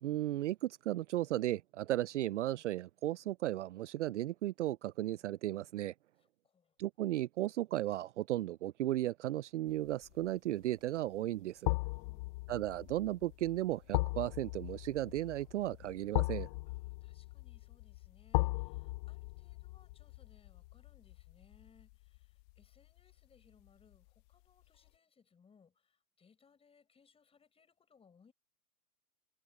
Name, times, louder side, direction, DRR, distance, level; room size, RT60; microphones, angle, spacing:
voice 1, 0.0-5.9 6.8-11.7 12.5-16.5, right 14 dB, 55° right, 0.7 m, -35 dB
voice 2, 6.2-6.8 12.0-12.5 16.7-28.3, left 6 dB, 15° left, 7.6 m, -67 dB
sound 1, 9.9-10.2 11.6-22.6 23.0-23.1, left 22 dB, 30° left, 0.7 m, -38 dB
hypercardioid pair, 130°, 44 cm